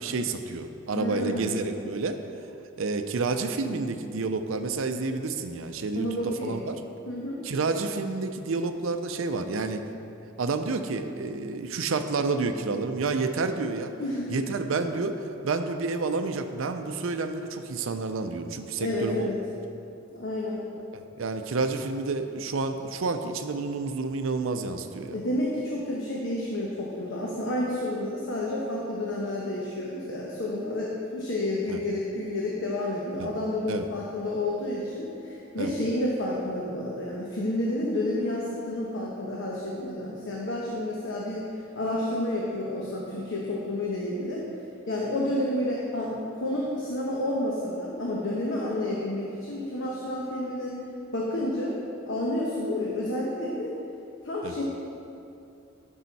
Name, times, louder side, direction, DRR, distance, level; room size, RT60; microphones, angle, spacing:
voice 1, 0.0-2.2 2.8-6.8 7.4-9.8 10.4-13.9 14.3-19.3 20.9-25.2 31.7-31.8 33.2-33.3 33.7-33.9 35.6-35.7 54.4-54.5, right 3 dB, 65° right, 7 dB, 0.5 m, -29 dB
voice 2, 0.9-1.6 6.0-6.6 7.0-7.4 14.0-14.5 18.8-19.4 20.1-20.7 25.1-41.4 41.7-44.4 44.9-50.7 51.1-51.8 52.1-53.7 54.2-54.6, left 1 dB, 60° left, -4 dB, 1.0 m, -30 dB
12.0 x 5.6 x 4.1 m, 2.7 s
head